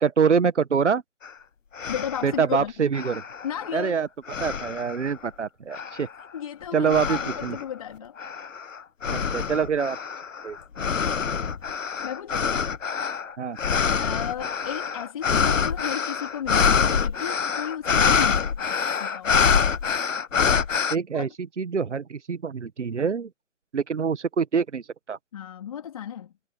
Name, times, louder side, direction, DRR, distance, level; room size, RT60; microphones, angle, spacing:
voice 1, 0.0-1.0 2.2-3.2 3.7-4.1 4.4-6.1 6.7-7.6 9.1-10.0 10.4-10.6 13.4-13.6 20.9-21.3 21.6-23.3 23.7-24.8 25.1-25.2, right 6 dB, 60° right, 1.3 m, -25 dB
sound 1, 1.2-1.3 1.8-2.3 2.9-3.9 4.3-5.1 5.7-6.2 6.9-7.6 8.2-21.0, left 6 dB, 75° left, 0.9 m, -25 dB
voice 2, 1.9-2.7 3.4-4.0 5.7-5.8 6.3-8.2 12.0-12.6 14.0-19.4 21.1-21.3 25.3-26.3, left 9 dB, 25° left, 3.5 m, -34 dB
figure-of-eight pair, 165°, 39 cm